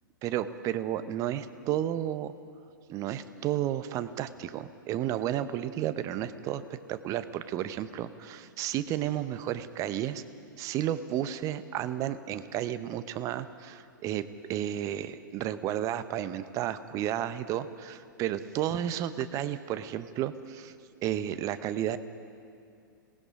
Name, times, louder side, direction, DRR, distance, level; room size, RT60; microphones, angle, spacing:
voice 1, 0.2-2.3 2.9-6.6 6.9-10.2 10.6-14.2 14.5-20.7 21.0-22.0, right 11 dB, 30° right, 13 dB, 0.9 m, -32 dB
26.5 x 19.0 x 5.1 m, 2.4 s
figure-of-eight pair, 105°, 11 cm